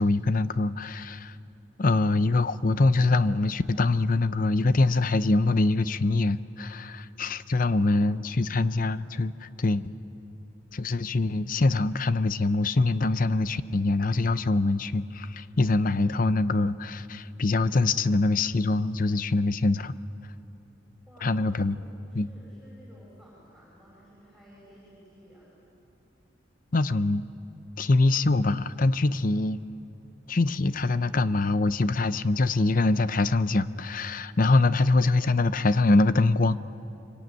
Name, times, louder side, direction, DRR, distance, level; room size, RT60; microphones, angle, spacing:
voice 1, 0.0-1.4 1.8-9.9 10.7-19.9 21.2-21.8 22.1-22.3 26.7-27.3 27.8-29.6 30.3-36.6, left 2 dB, 45° left, 14 dB, 0.6 m, -24 dB
voice 2, 7.8-8.1 21.1-21.4 21.7-25.5, equal, ahead, -7 dB, 6.7 m, -54 dB
25.0 x 24.5 x 9.2 m, 2.9 s
head